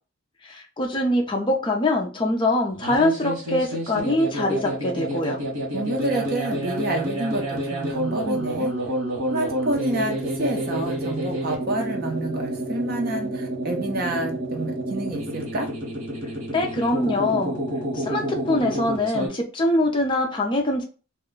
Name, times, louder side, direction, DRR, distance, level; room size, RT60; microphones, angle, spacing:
voice 1, 0.4-5.4 16.5-17.5 17.9-20.8, left 1 dB, 20° left, 0.4 m, -23 dB
sound 1, 2.7-19.3, right 1 dB, 80° right, 1.1 m, -29 dB
voice 2, 5.7-8.7 9.3-15.7, right 1 dB, 45° right, 0.6 m, -28 dB
2.2 x 2.1 x 3.8 m
head